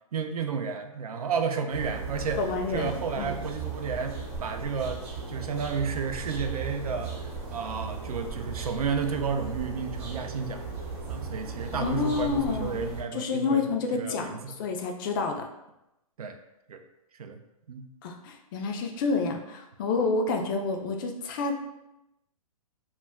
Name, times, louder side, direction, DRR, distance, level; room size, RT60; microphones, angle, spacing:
voice 1, 0.1-2.4 2.7-5.0 5.3-7.1 7.5-10.6 11.1-13.6 13.9-14.5 16.2-16.4 16.7-16.8 17.2-17.4 17.7-17.9, right 5 dB, 80° right, 6 dB, 0.4 m, -32 dB
sound 1, 1.7-13.0, right 4 dB, 45° right, 0.8 m, -37 dB
voice 2, 2.4-3.4 11.7-12.8 13.1-15.4 18.0-21.5, left 4 dB, 35° left, 3 dB, 0.4 m, -29 dB
2.2 x 2.1 x 3.4 m, 0.89 s
hypercardioid pair, 130°, 19 cm